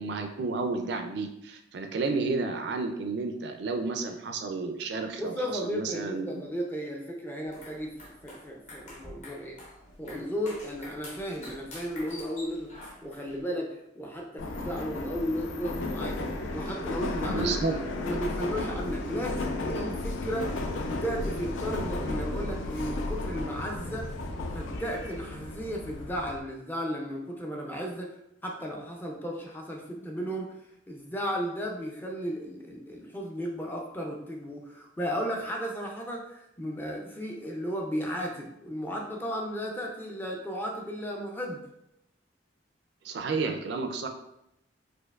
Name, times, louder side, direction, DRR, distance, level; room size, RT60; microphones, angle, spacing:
voice 1, 0.0-6.4 17.3-17.8 43.0-44.1, right 3 dB, 60° right, 5 dB, 0.3 m, -31 dB
voice 2, 5.2-9.6 10.0-16.2 16.5-17.7 18.0-20.6 20.9-24.1 24.5-28.1 28.4-30.6 30.9-41.6, equal, 10° left, 0 dB, 0.4 m, -34 dB
sound 1, 7.4-13.4, left 1 dB, 35° left, 0.9 m, -47 dB
Subway metro underground, 14.4-26.4, left 2 dB, 85° left, 0.4 m, -34 dB
4.4 x 2.5 x 2.3 m, 0.81 s
head